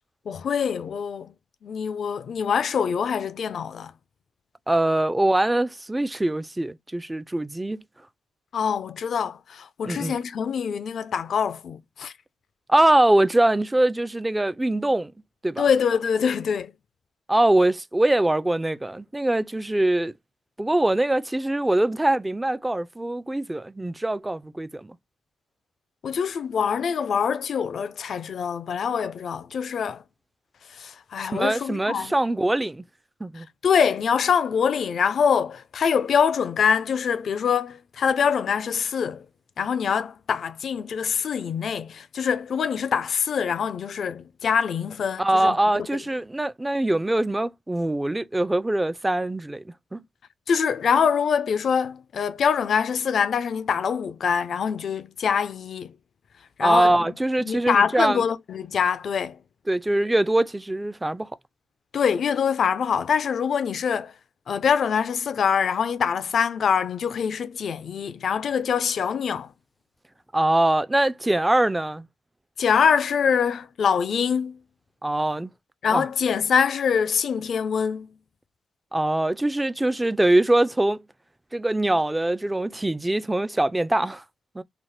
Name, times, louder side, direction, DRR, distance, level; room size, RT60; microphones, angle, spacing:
voice 1, 0.3-1.3 1.6-3.9 8.5-12.1 15.6-16.7 26.0-30.0 30.7-32.1 33.3-39.3 39.6-45.9 50.5-56.0 56.6-57.1 57.4-59.4 61.9-64.1 64.5-69.5 72.6-74.6 75.8-78.2, left 7 dB, 65° left, 0.4 m, -24 dB
voice 2, 4.7-7.8 9.8-10.2 12.7-15.1 15.4-15.6 17.3-20.1 20.6-25.0 31.3-32.8 33.2-33.5 45.2-49.6 49.9-50.0 56.6-58.2 59.7-61.3 70.3-72.1 75.0-75.5 75.9-76.0 78.9-81.0 81.5-84.2 84.6-84.7, right 1 dB, 15° right, 0.3 m, -23 dB
2.9 x 2.1 x 3.1 m
cardioid pair, 65°, 0 cm